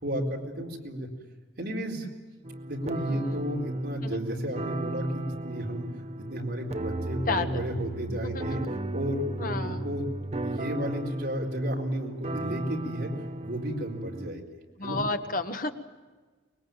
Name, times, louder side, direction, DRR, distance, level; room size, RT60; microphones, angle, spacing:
voice 1, 0.0-1.1 1.6-2.1 2.6-5.9 6.2-8.6 8.9-10.0 10.4-13.1 13.4-14.4 14.8-15.0, equal, 60° right, 0 dB, 4.2 m, -32 dB
sound 1, 2.4-14.3, right 1 dB, 35° right, 0.7 m, -35 dB
voice 2, 3.1-3.4 4.0-4.2 7.3-7.7 8.1-8.7 9.4-9.9 14.8-15.7, left 3 dB, 50° left, 7 dB, 1.5 m, -32 dB
24.0 x 21.5 x 9.1 m, 1.3 s
head